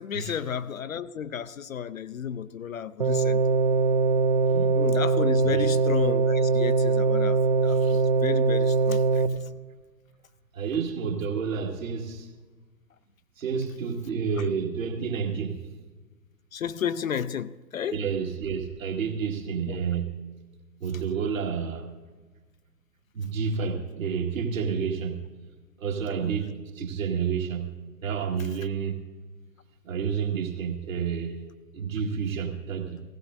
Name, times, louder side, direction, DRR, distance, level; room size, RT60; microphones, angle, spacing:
voice 1, 0.0-3.4 4.8-9.2 16.5-18.0 19.7-19.8 26.2-26.3, left 8 dB, 55° left, 0.5 m, -32 dB
sound 1, 3.0-9.3, right 4 dB, 30° right, 0.5 m, -22 dB
voice 2, 5.4-5.8 10.5-12.3 13.4-15.6 17.9-20.1 20.8-21.8 23.2-25.2 25.8-27.7 28.0-29.0 29.8-31.4 31.7-33.0, right 6 dB, 50° right, 1.9 m, -29 dB
17.0 x 16.0 x 2.6 m
figure-of-eight pair, 125°, 50 cm